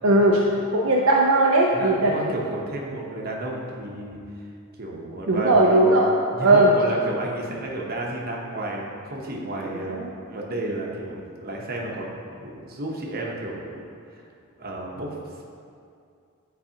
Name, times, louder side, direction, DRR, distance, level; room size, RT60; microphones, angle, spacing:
voice 1, 0.0-2.3 5.3-6.1 6.4-6.7 9.7-10.1, right 1 dB, 65° right, -2 dB, 0.5 m, -19 dB
voice 2, 1.7-4.5 4.8-5.8 6.3-10.0 10.3-14.2 14.6-15.4, right 1 dB, 45° right, -2 dB, 0.9 m, -32 dB
9.6 x 4.0 x 2.8 m, 2.4 s
head